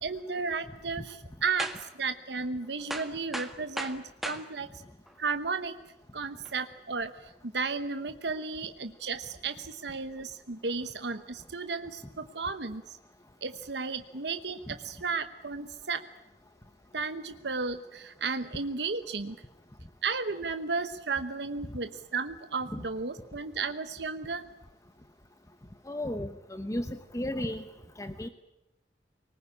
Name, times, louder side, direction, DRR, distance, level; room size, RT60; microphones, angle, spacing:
voice 1, 0.0-4.8 5.2-5.8 6.1-13.0 13.4-16.0 16.9-19.4 20.0-24.5, right 4 dB, 75° right, 9 dB, 1.0 m, -34 dB
sound 1, 1.6-1.9 2.3-2.4 2.9-4.4 5.1-5.2 6.4-6.6, equal, ahead, 1.7 m, -36 dB
voice 2, 25.9-27.7 28.0-28.3, left 1 dB, 20° left, 9 dB, 1.0 m, -34 dB
24.0 x 20.0 x 10.0 m, 0.93 s
head